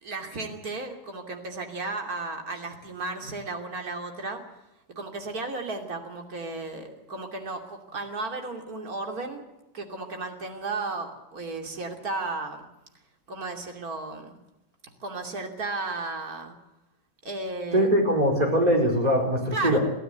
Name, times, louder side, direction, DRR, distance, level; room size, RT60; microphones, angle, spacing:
voice 1, 0.0-4.4 5.0-9.4 9.7-12.6 13.3-14.4 15.0-16.5 17.2-17.9 19.5-19.8, right 3 dB, 55° right, 4 dB, 3.3 m, -34 dB
voice 2, 17.7-19.8, equal, 20° right, 2 dB, 4.8 m, -22 dB
24.0 x 15.0 x 8.1 m, 0.94 s
omnidirectional pair, 1.9 m